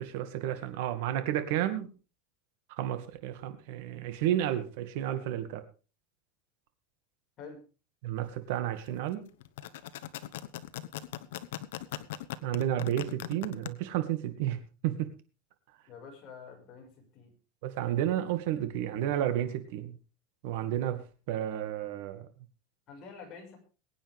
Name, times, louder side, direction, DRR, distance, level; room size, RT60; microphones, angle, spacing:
voice 1, 0.0-1.9 2.7-5.6 8.0-9.2 12.4-14.6 14.8-15.1 17.6-20.0 20.4-22.3, right 12 dB, 65° right, 9 dB, 2.2 m, -31 dB
sound 1, 9.4-13.7, left 14 dB, 85° left, 1.0 m, -39 dB
voice 2, 15.9-17.3 22.9-23.6, left 5 dB, 35° left, 0 dB, 5.8 m, -47 dB
22.5 x 9.1 x 3.6 m, 0.34 s
supercardioid pair, 155°, 0 cm